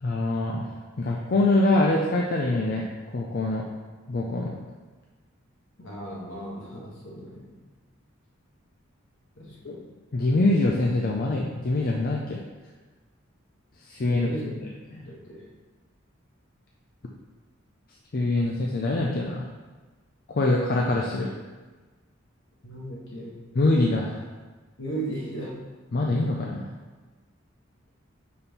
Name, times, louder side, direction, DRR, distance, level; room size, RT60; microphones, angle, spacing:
voice 1, 0.0-3.6 4.1-4.6 9.6-9.8 10.1-12.4 13.8-14.3 15.0-15.1 18.1-19.5 20.3-21.3 23.5-24.3 25.9-26.7, left 2 dB, 50° left, -1 dB, 0.5 m, -24 dB
voice 2, 5.8-7.5 9.4-9.9 14.1-14.6 15.1-15.5 22.6-23.4 24.8-25.6, right 1 dB, 65° left, -3 dB, 1.4 m, -36 dB
4.3 x 4.2 x 5.3 m, 1.3 s
head